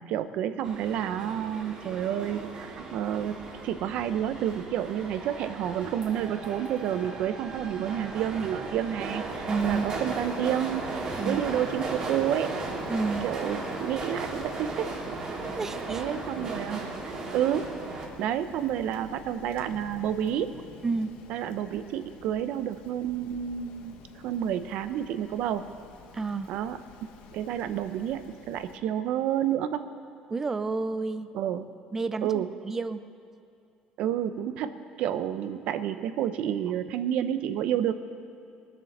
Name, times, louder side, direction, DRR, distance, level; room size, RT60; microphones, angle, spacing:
voice 1, 0.0-12.6 13.2-14.9 15.9-17.7 18.2-20.5 21.3-24.0 24.2-25.6 26.5-26.8 27.3-29.9 31.3-31.7 32.2-32.5 34.0-37.9, right 10 dB, 70° right, 11 dB, 0.7 m, -30 dB
sound 1, 0.6-18.1, right 3 dB, 35° right, 2.2 m, -36 dB
Rain, 9.5-28.8, left 7 dB, 75° left, 1.1 m, -49 dB
voice 2, 9.5-9.9 11.2-11.4 12.9-13.3 15.6-16.0 20.8-21.2 26.1-26.5 30.3-31.3 31.9-33.0, right 4 dB, 20° right, 12 dB, 0.4 m, -30 dB
20.0 x 7.6 x 6.6 m, 2.5 s
cardioid pair, 140°, 2 cm